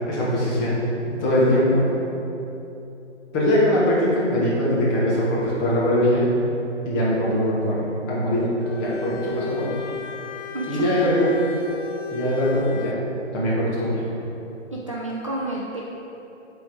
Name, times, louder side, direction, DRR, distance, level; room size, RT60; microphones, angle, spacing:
voice 1, 0.1-0.7 1.0-1.9 3.3-6.2 6.8-9.7 10.7-11.3 12.1-13.1 13.3-14.0, left 1 dB, 20° left, -7 dB, 1.3 m, -21 dB
Bowed string instrument, 8.6-13.1, left 5 dB, 85° left, 0.5 m, -35 dB
voice 2, 10.5-10.9 14.7-15.8, right 2 dB, 30° right, -4 dB, 0.4 m, -30 dB
7.4 x 3.8 x 4.8 m, 3.0 s
figure-of-eight pair, 135°, 36 cm